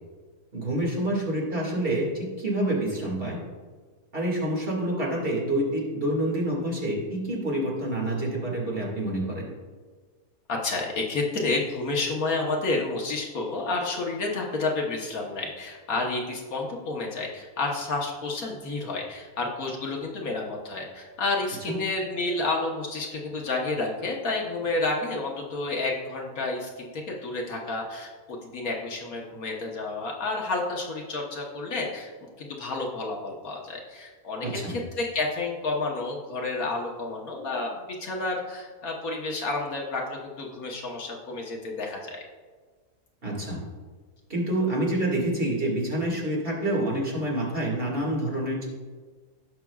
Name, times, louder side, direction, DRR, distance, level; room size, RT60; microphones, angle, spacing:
voice 1, 0.5-3.4 4.1-9.5 21.7-21.8 34.4-34.7 43.2-43.6 44.3-48.7, right 1 dB, 35° right, -3 dB, 2.2 m, -27 dB
voice 2, 10.5-32.1 32.4-42.2, left 3 dB, 65° left, -1 dB, 1.5 m, -30 dB
17.5 x 5.9 x 2.3 m, 1.5 s
omnidirectional pair, 1.7 m